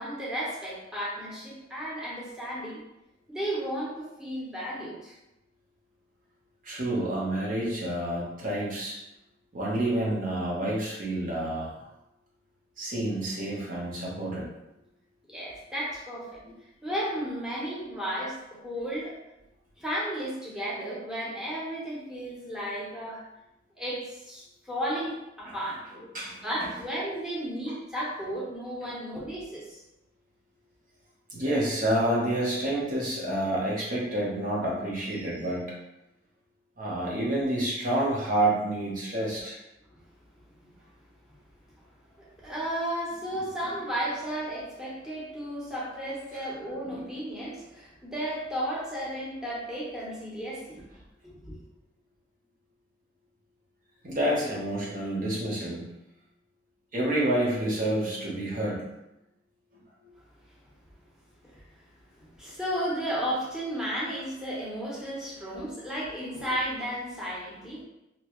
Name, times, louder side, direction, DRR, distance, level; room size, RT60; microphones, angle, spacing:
voice 1, 0.0-2.8 3.3-5.1 15.3-16.4 16.8-19.1 19.8-23.2 23.8-25.8 26.4-29.8 42.4-50.8 51.4-51.6 62.4-67.8, equal, 5° right, -7 dB, 1.0 m, -33 dB
voice 2, 6.6-9.0 9.5-11.7 12.8-14.5 25.4-25.5 25.9-26.7 27.7-27.8 28.8-28.9 31.3-35.7 36.8-39.6 46.9-47.1 54.0-55.8 56.9-58.8, right 1 dB, 45° right, -4 dB, 1.0 m, -29 dB
3.0 x 3.0 x 3.0 m, 0.91 s
head